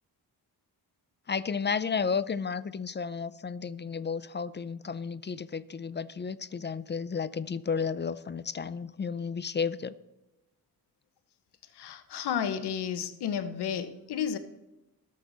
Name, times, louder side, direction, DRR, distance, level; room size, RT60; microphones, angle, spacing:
voice 1, 1.3-9.9, left 5 dB, 30° left, 0.5 m, -32 dB
voice 2, 11.8-14.4, left 8 dB, 90° left, 1.0 m, -32 dB
19.5 x 6.6 x 4.0 m
cardioid pair, 90°, 39 cm